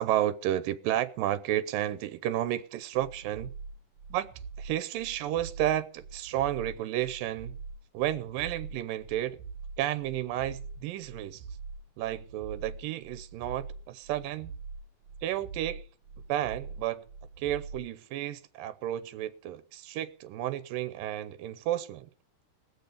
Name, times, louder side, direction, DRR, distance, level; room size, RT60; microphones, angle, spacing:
voice 1, 0.0-3.5 4.1-4.3 4.6-7.6 7.9-9.4 9.8-11.4 12.0-14.5 15.2-15.8 16.3-17.0 17.4-22.1, right 12 dB, 90° right, 2.5 m, -32 dB
sound 1, 2.9-17.9, right 4 dB, 70° right, 2.1 m, -44 dB
19.5 x 6.9 x 6.8 m
omnidirectional pair, 3.9 m